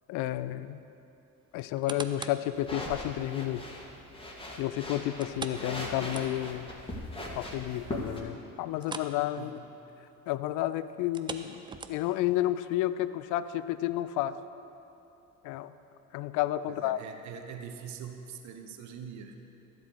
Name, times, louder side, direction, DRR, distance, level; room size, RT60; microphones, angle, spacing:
voice 1, 0.1-0.8 1.5-3.7 4.6-6.7 7.4-9.6 10.3-11.6 11.9-14.3 15.4-15.7 16.1-17.0, left 14 dB, 45° left, 14 dB, 0.5 m, -31 dB
sound 1, 1.6-2.5 3.0-3.1 5.2-6.7 7.0-7.1 7.5-7.6 8.8-9.2 9.5-9.7 11.0-12.3 12.9-13.0, right 5 dB, 10° right, 0.4 m, -42 dB
sound 2, 2.5-8.2, left 1 dB, 10° left, 1.8 m, -40 dB
voice 2, 9.4-9.8 16.7-19.4, right 7 dB, 40° right, 5 dB, 1.0 m, -43 dB
13.0 x 7.6 x 5.1 m, 3.0 s
figure-of-eight pair, 55°, 43 cm